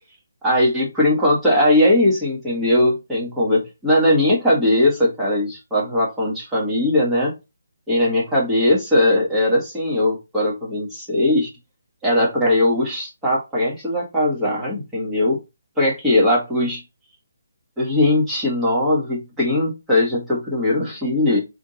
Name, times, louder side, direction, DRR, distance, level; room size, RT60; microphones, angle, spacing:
voice 1, 0.4-7.3 7.9-11.5 12.0-15.4 15.8-16.8 17.8-21.4, left 1 dB, 5° right, -5 dB, 1.7 m, -19 dB
3.6 x 3.6 x 4.0 m, 0.24 s
hypercardioid pair, 165°, 0 cm